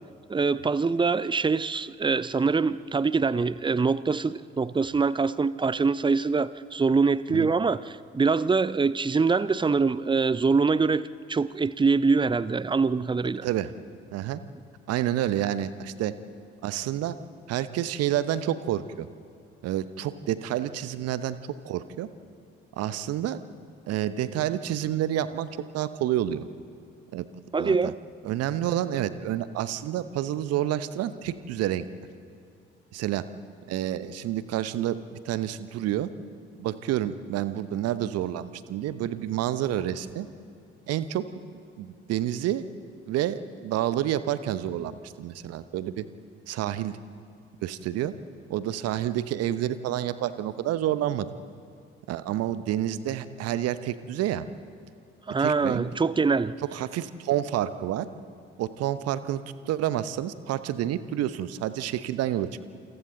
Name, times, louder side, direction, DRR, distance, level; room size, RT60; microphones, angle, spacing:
voice 1, 0.3-13.5 27.5-28.0 55.3-56.6, right 4 dB, 15° right, 17 dB, 0.6 m, -24 dB
voice 2, 14.9-16.1 16.6-17.2 17.5-19.1 19.6-21.4 21.6-22.1 22.8-23.4 23.9-25.5 25.7-26.4 27.1-27.3 27.6-27.9 28.2-31.9 32.9-33.2 33.7-36.1 36.6-40.3 40.9-41.3 41.5-42.7 43.1-46.1 46.5-47.0 47.6-48.1 48.5-51.3 52.1-54.5 55.4-55.9 56.6-58.1 58.6-62.6, right 12 dB, 55° right, 14 dB, 1.0 m, -29 dB
28.0 x 27.0 x 4.0 m, 2.3 s
figure-of-eight pair, 45°, 29 cm